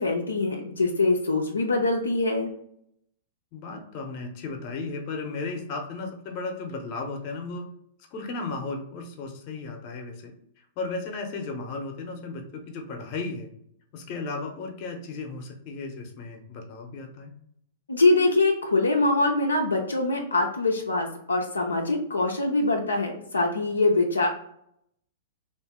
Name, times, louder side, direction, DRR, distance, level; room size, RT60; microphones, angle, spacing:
voice 1, 0.0-2.5 17.9-24.3, left 2 dB, 90° left, 1 dB, 0.5 m, -23 dB
voice 2, 3.5-7.7 8.1-13.5 13.9-17.3, left 3 dB, 45° left, 4 dB, 0.8 m, -35 dB
2.7 x 2.6 x 3.6 m, 0.73 s
hypercardioid pair, 110°, 0 cm